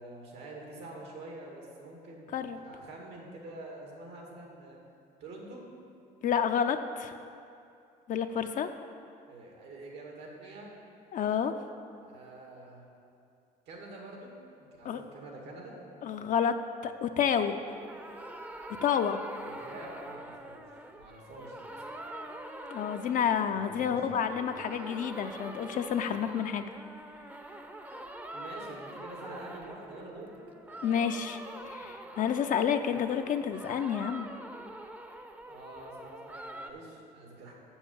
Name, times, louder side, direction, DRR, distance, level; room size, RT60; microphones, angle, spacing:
voice 1, 0.0-4.8 5.2-5.6 9.3-10.7 12.0-12.9 13.7-14.4 14.7-15.8 19.3-20.6 21.0-21.9 23.5-24.2 28.3-30.3 35.5-37.5, right 2 dB, 85° right, -1 dB, 2.2 m, -46 dB
voice 2, 6.2-7.1 8.1-8.7 11.1-11.5 14.8-15.0 16.0-17.6 18.8-19.2 22.7-26.7 30.8-31.4 31.7-34.3, left 8 dB, 50° left, 7 dB, 0.4 m, -29 dB
sound 1, 17.7-23.9 24.2-36.7, right 1 dB, 10° right, 0.6 m, -45 dB
7.1 x 6.7 x 7.1 m, 2.5 s
cardioid pair, 110°, 17 cm